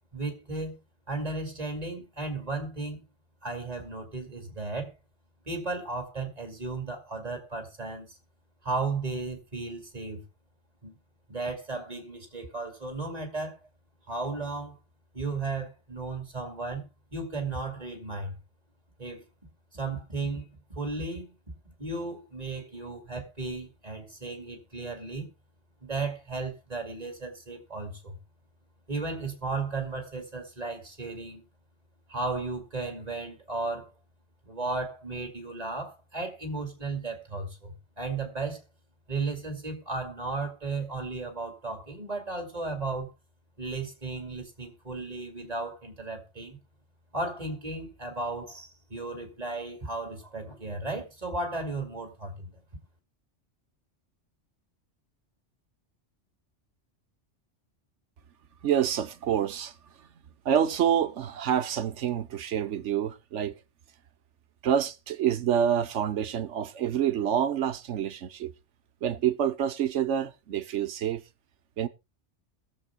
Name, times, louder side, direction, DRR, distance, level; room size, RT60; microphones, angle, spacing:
voice 1, 0.1-0.8 1.1-3.0 3.4-4.9 5.5-8.1 8.6-10.2 10.8-10.9 11.3-13.6 14.1-14.8 15.1-16.9 17.1-18.4 19.0-19.2 19.7-20.4 20.7-21.3 21.8-25.3 25.8-28.2 28.9-31.4 32.1-33.9 34.4-38.6 39.1-43.1 43.6-46.6 47.1-52.6, right 3 dB, 35° right, 2.7 m, -35 dB
voice 2, 58.6-59.7 60.4-63.5 64.6-68.5 69.0-71.2 71.8-71.9, right 9 dB, 75° right, 1.1 m, -27 dB
21.0 x 7.5 x 2.2 m
omnidirectional pair, 1.2 m